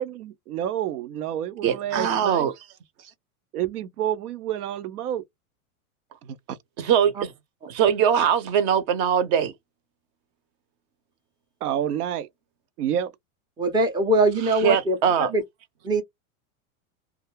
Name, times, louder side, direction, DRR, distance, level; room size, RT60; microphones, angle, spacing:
voice 1, 0.0-2.5 3.5-5.2 6.2-6.6 11.6-12.3 12.8-13.1, right 10 dB, 90° right, 0.6 m, -29 dB
voice 2, 1.6-2.5 6.8-7.3 7.7-9.5 14.6-15.3, right 8 dB, 45° right, 0.7 m, -21 dB
voice 3, 13.6-15.4 15.8-16.0, right 1 dB, 10° right, 0.4 m, -22 dB
2.3 x 2.1 x 3.2 m
supercardioid pair, 125°, 44 cm